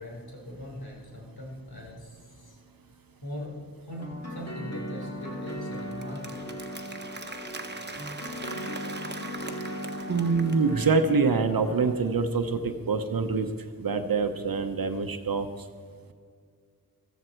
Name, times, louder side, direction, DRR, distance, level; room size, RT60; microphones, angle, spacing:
voice 1, 0.0-2.6 3.2-3.5 3.8-6.4, left 1 dB, 75° left, -2 dB, 4.0 m, -40 dB
sound 1, 4.0-11.9, equal, 40° left, 2.2 m, -38 dB
Applause, 5.2-11.0, right 3 dB, 30° right, 1.1 m, -42 dB
voice 2, 10.1-13.5 13.8-15.5, right 4 dB, 65° right, 7 dB, 0.9 m, -25 dB
14.5 x 14.0 x 4.5 m, 2.1 s
wide cardioid pair, 80°, 37 cm